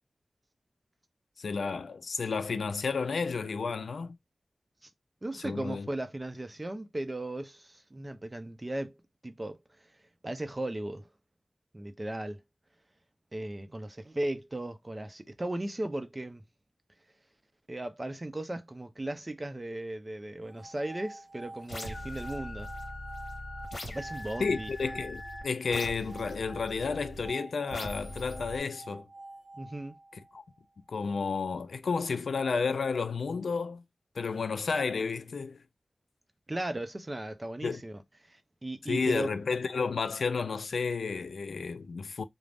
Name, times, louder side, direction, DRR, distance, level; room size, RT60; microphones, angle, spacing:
voice 1, 1.4-4.2 5.3-5.9 24.4-29.1 30.3-30.4 30.9-33.8 34.2-35.6 37.6-37.8 38.9-42.2, left 5 dB, 85° left, 0.3 m, -31 dB
voice 2, 5.2-8.9 9.2-9.6 10.2-11.1 11.7-12.4 13.3-16.4 17.7-22.7 23.8-24.7 29.6-29.9 36.5-38.0 38.3-39.3, right 1 dB, 25° right, 0.5 m, -36 dB
sound 1, 20.4-30.6, right 2 dB, 75° right, 0.5 m, -48 dB
sound 2, 21.7-27.3 27.7-28.6, left 1 dB, 60° left, 1.1 m, -41 dB
2.5 x 2.0 x 3.3 m
wide cardioid pair, 75°, 0 cm